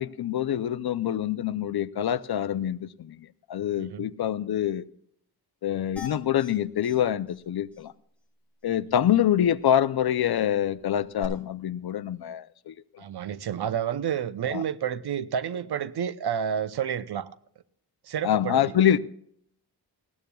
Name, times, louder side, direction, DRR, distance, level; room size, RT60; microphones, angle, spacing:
voice 1, 0.0-3.2 3.5-4.9 5.6-7.9 8.6-12.7 14.5-14.6 18.2-19.0, left 10 dB, 70° left, 0.6 m, -25 dB
voice 2, 3.8-4.1 13.0-17.3 18.1-18.7, right 8 dB, 75° right, 0.7 m, -30 dB
sound 1, 6.0-6.5 6.8-7.0 7.3-7.4 7.7-7.8 11.2-11.3, left 6 dB, 5° left, 6.0 m, -40 dB
19.5 x 16.0 x 2.3 m
wide cardioid pair, 155°, 39 cm